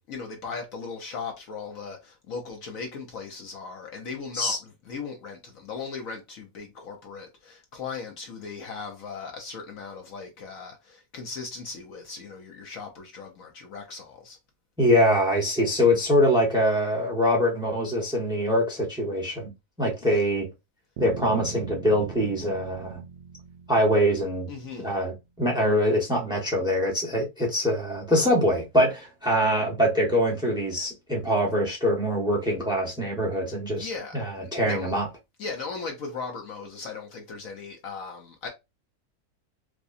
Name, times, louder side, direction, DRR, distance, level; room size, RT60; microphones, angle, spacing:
voice 1, 0.1-14.4 20.0-20.2 24.5-25.0 33.7-34.9 35.4-38.5, left 4 dB, 65° left, 1.1 m, -38 dB
voice 2, 14.8-19.5 19.8-20.5 21.0-23.0 23.7-24.5 24.8-25.1 25.4-33.9 34.1-35.1, equal, 5° right, 1.0 m, -23 dB
sound 1, 21.0-24.9, right 7 dB, 85° right, 0.5 m, -41 dB
4.8 x 2.2 x 2.5 m
omnidirectional pair, 1.7 m